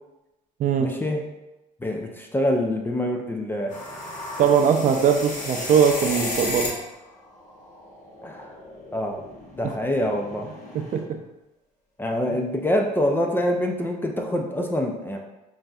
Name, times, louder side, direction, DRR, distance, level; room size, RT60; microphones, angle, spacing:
voice 1, 0.8-1.2 1.8-3.7 8.2-8.5 8.9-9.2 9.6-10.5 12.0-15.2, left 1 dB, 10° left, 2 dB, 0.4 m, -25 dB
sound 1, 3.7-6.9 7.2-11.0, left 2 dB, 50° left, 1.1 m, -34 dB
voice 2, 4.4-6.7 10.9-11.0 12.3-12.4, right 7 dB, 50° right, 5 dB, 0.4 m, -20 dB
5.2 x 2.6 x 2.3 m, 0.98 s
cardioid pair, 110°, 17 cm